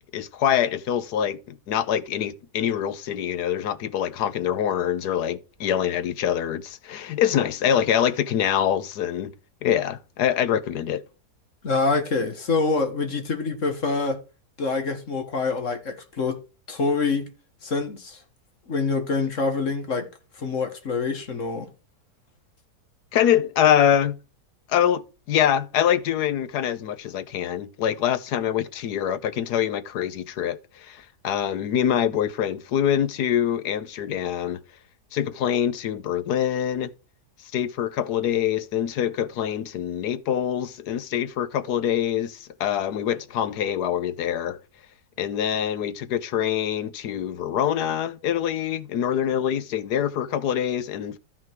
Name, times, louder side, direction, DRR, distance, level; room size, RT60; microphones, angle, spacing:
voice 1, 0.1-9.3 9.6-11.0 23.1-24.2 24.7-34.6 35.1-36.9 37.5-44.6 45.2-51.2, left 9 dB, 75° left, 1.4 m, -25 dB
voice 2, 11.6-14.2 14.6-16.4 16.7-17.3 17.6-18.2 18.7-20.1 20.4-21.7, left 4 dB, 50° left, 1.9 m, -25 dB
13.0 x 5.8 x 4.6 m
omnidirectional pair, 1.7 m